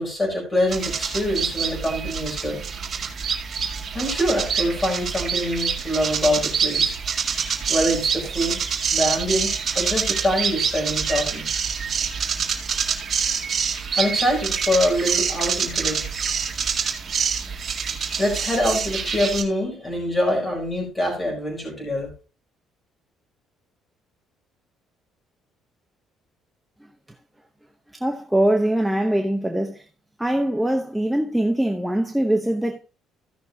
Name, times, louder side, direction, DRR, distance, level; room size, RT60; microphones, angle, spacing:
voice 1, 0.0-2.6 3.9-7.0 7.7-8.6 8.9-11.5 14.0-16.1 18.2-22.1, equal, 15° left, 4.8 m, -24 dB
sound 1, 0.7-19.4, right 6 dB, 30° right, 2.1 m, -26 dB
voice 2, 28.0-29.8 30.2-32.8, right 1 dB, 5° right, 0.8 m, -22 dB
16.0 x 6.2 x 2.6 m
cardioid pair, 175°, 0 cm